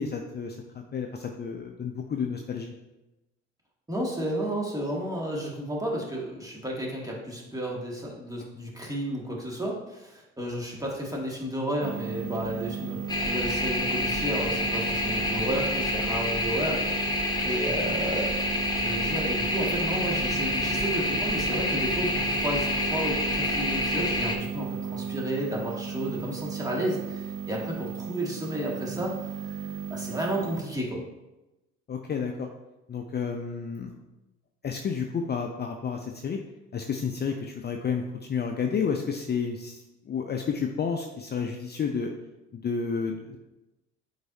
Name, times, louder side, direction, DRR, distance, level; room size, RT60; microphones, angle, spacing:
voice 1, 0.0-2.7 31.9-32.5 32.9-33.9 34.6-36.4 36.7-42.1 42.5-43.4, left 6 dB, 30° left, 3 dB, 0.6 m, -31 dB
voice 2, 3.9-16.8 17.4-18.3 18.7-31.0, right 1 dB, 10° right, -2 dB, 2.0 m, -32 dB
sound 1, 11.8-30.6, right 7 dB, 45° right, 0.6 m, -35 dB
sound 2, 13.1-24.4, left 1 dB, 10° left, 1.2 m, -28 dB
7.9 x 4.8 x 2.7 m, 1.0 s
hypercardioid pair, 60°, 32 cm